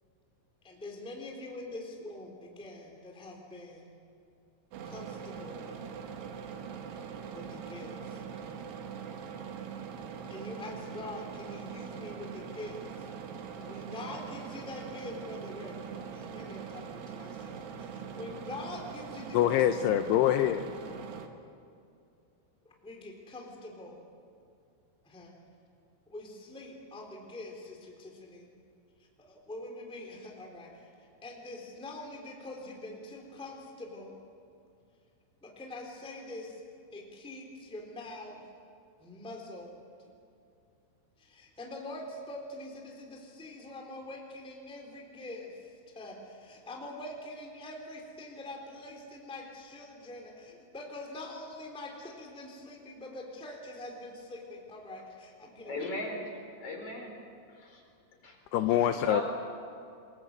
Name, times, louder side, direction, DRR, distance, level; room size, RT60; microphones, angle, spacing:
voice 1, 0.6-3.9 4.8-5.7 7.3-8.2 10.3-13.1 13.4-19.5 22.6-24.0 25.0-25.3 26.1-28.6 29.2-34.2 35.4-36.6 36.9-38.4 39.0-39.8 41.2-55.8, left 2 dB, ahead, 1 dB, 2.6 m, -44 dB
sound 1, 4.7-21.3, right 7 dB, 65° right, 3.3 m, -42 dB
voice 2, 19.3-20.6 58.5-59.2, left 11 dB, 85° left, 8 dB, 2.3 m, -25 dB
voice 3, 55.6-56.2 56.6-57.1 57.5-57.8 58.2-58.4 58.7-59.2, left 1 dB, 30° left, 1 dB, 5.2 m, -37 dB
27.5 x 22.5 x 7.9 m, 2.5 s
omnidirectional pair, 5.7 m